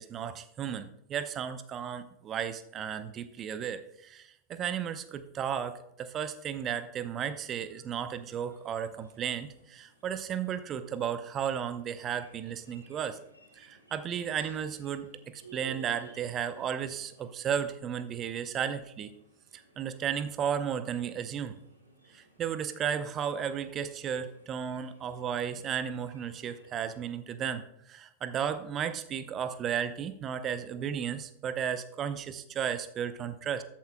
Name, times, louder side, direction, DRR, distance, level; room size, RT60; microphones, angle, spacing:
voice 1, 0.0-13.2 13.6-19.1 19.5-21.6 22.1-33.6, right 8 dB, 30° right, 12 dB, 0.7 m, -34 dB
sound 1, 8.0-26.8, right 2 dB, 85° right, 2.3 m, -58 dB
13.5 x 8.4 x 2.2 m, 0.80 s
figure-of-eight pair, 90°, 0 cm